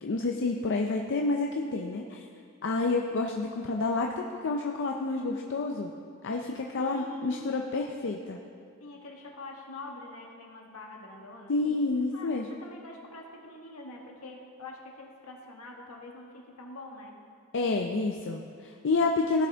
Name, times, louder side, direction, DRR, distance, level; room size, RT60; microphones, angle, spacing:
voice 1, 0.0-2.3 2.6-5.9 6.2-8.4 11.5-12.5 17.5-19.5, left 3 dB, 55° left, 2 dB, 0.5 m, -29 dB
voice 2, 6.8-7.7 8.8-11.8 12.1-17.2, left 2 dB, 75° left, 0 dB, 1.4 m, -45 dB
16.5 x 6.0 x 3.4 m, 2.4 s
head